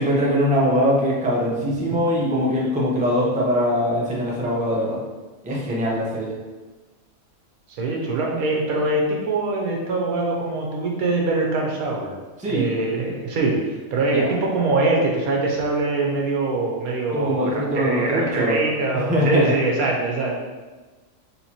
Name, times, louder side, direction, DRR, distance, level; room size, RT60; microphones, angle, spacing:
voice 1, 0.0-5.0 5.4-6.4 12.4-12.7 14.1-14.3 17.1-18.6 18.9-19.5, equal, 10° right, -5 dB, 0.5 m, -22 dB
voice 2, 7.8-12.1 12.5-20.3, right 2 dB, 85° right, -1 dB, 1.3 m, -23 dB
4.3 x 3.9 x 2.9 m, 1.3 s
omnidirectional pair, 1.5 m